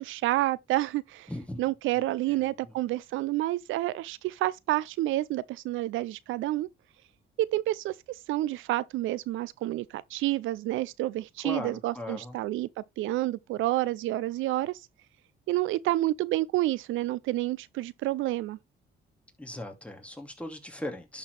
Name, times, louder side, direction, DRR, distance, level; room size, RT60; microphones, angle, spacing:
voice 1, 0.0-1.3 1.6-6.7 7.4-14.8 15.5-18.6, right 16 dB, 85° right, 0.5 m, -29 dB
voice 2, 1.3-1.6 2.0-2.7 11.4-12.4 19.4-21.2, left 1 dB, 5° left, 2.5 m, -39 dB
11.5 x 4.4 x 3.3 m
cardioid pair, 90°, 20 cm